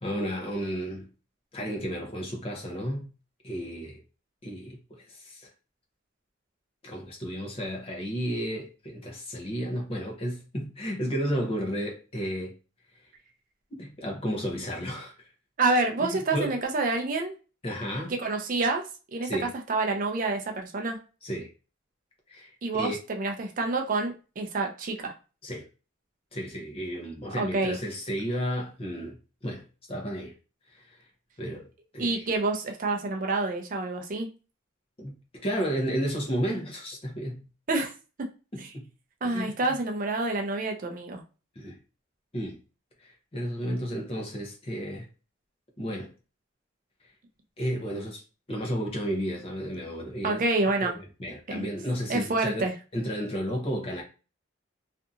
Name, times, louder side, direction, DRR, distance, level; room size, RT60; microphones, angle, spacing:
voice 1, 0.0-1.1 1.5-3.1 3.4-4.0 4.4-5.5 6.8-12.5 13.7-15.1 16.0-16.6 17.6-18.1 19.2-19.5 21.2-21.5 22.3-23.0 25.4-25.6 26.3-29.2 29.4-30.3 30.7-31.0 31.4-31.7 31.9-32.3 35.0-35.1 35.4-37.4 38.5-38.9 39.2-39.8 41.6-41.8 42.3-42.6 43.0-45.1 45.8-46.1 47.6-48.2 48.5-50.4 50.8-52.6 52.9-54.0, equal, 30° left, 0.7 m, -32 dB
voice 2, 15.6-17.3 18.2-18.8 19.1-21.0 22.6-25.1 27.4-27.8 32.0-34.3 37.7-37.9 38.6-38.7 39.2-41.2 50.2-50.9 51.5-51.7 52.1-52.7, right 3 dB, 45° right, 0.4 m, -28 dB
2.7 x 2.5 x 2.4 m
head